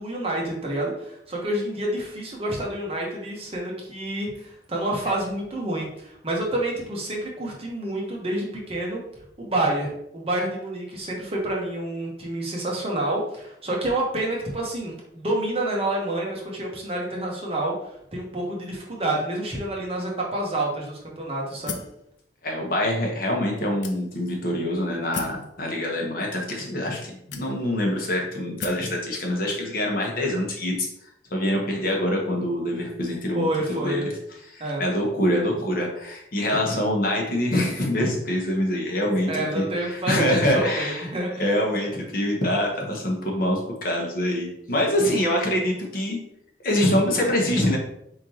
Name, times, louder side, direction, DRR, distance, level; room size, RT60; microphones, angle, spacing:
voice 1, 0.0-9.0 9.4-17.7 18.1-21.8 33.3-34.1 34.6-34.8 39.3-41.4, right 1 dB, 35° right, -2 dB, 1.1 m, -28 dB
sound 1, 21.7-22.0 22.8-22.9 23.8-24.3 25.1-25.5 26.4-26.5 27.3-27.8 28.6-28.9, left 6 dB, 90° left, 0.5 m, -35 dB
voice 2, 22.4-30.9 31.3-34.1 34.4-39.3 39.5-41.0 41.4-46.2 46.6-47.8, left 1 dB, 55° left, 0 dB, 1.1 m, -25 dB
4.5 x 3.7 x 2.9 m, 0.75 s
head